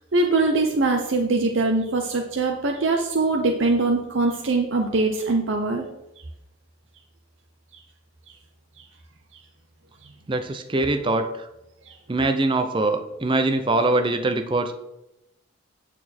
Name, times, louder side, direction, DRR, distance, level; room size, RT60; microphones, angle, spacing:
voice 1, 0.1-5.8 11.9-12.0, right 3 dB, 65° right, 3 dB, 0.7 m, -22 dB
voice 2, 10.3-11.5 12.1-14.7, right 2 dB, 25° right, 7 dB, 0.5 m, -23 dB
8.9 x 6.4 x 4.3 m, 0.90 s
head